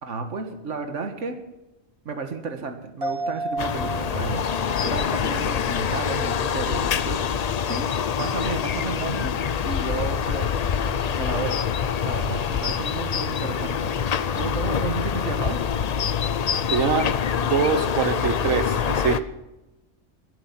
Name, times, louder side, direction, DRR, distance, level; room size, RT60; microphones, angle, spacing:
voice 1, 0.0-1.4 2.0-7.9 8.2-9.3 9.6-10.6 11.1-11.6 12.0-13.9 14.3-15.6, right 4 dB, 70° right, 6 dB, 1.8 m, -32 dB
sound 1, 3.0-6.7 7.0-7.1, right 2 dB, 50° right, 2.7 m, -34 dB
sound 2, 3.6-19.2, left 7 dB, 55° left, 0.4 m, -25 dB
voice 2, 16.7-17.1 17.4-19.2, right 6 dB, 90° right, 10 dB, 1.3 m, -24 dB
22.5 x 7.7 x 5.9 m, 0.98 s
omnidirectional pair, 1.3 m